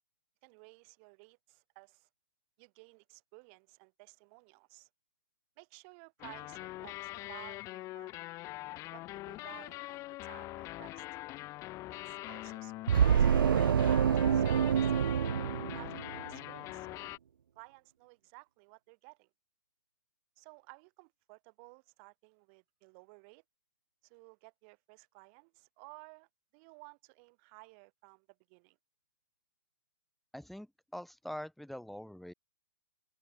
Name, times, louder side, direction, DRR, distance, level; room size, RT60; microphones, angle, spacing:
voice 1, 0.4-2.1 2.6-4.9 5.6-8.1 8.9-11.1 11.9-15.0 15.5-17.1 17.5-19.3 20.4-23.4 24.0-28.8, right 36 dB, 35° right, 6.2 m, -56 dB
sound 1, 6.2-17.2, left 18 dB, 25° left, 5.0 m, -43 dB
sound 2, 12.9-16.3, right 8 dB, 75° right, 0.6 m, -27 dB
voice 2, 30.3-32.3, equal, ahead, 4.0 m, -44 dB
open air
hypercardioid pair, 140°, 12 cm